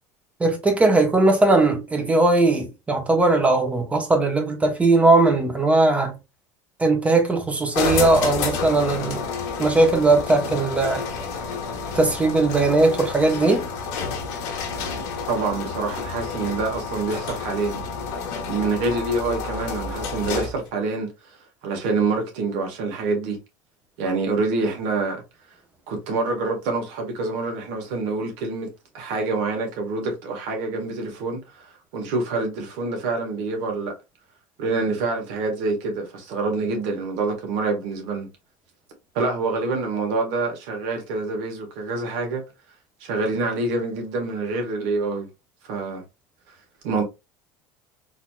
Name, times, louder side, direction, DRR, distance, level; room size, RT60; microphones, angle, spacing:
voice 1, 0.4-6.2 6.8-9.2 9.6-11.0 11.9-13.6, right 2 dB, 15° right, 1.0 m, -19 dB
sound 1, 7.7-20.7, left 5 dB, 75° left, 1.3 m, -30 dB
voice 2, 14.7-17.8 18.4-21.1 21.6-23.4 24.0-25.2 25.9-28.7 28.9-33.9 34.6-38.3 39.1-42.4 43.0-45.3 45.6-46.0 46.8-47.0, right 3 dB, 70° right, 1.6 m, -26 dB
4.0 x 2.9 x 2.4 m
supercardioid pair, 110°, 9 cm